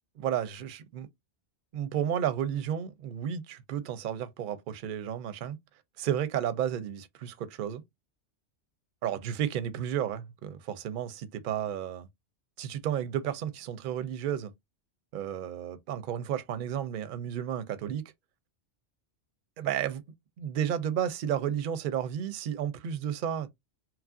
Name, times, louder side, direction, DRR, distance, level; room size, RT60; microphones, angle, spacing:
voice 1, 0.2-1.1 1.7-5.6 6.0-7.8 9.0-12.1 12.6-14.5 15.1-18.0 19.6-20.0 20.4-23.5, right 9 dB, 60° right, 0.6 m, -32 dB
3.0 x 2.4 x 2.4 m
omnidirectional pair, 1.2 m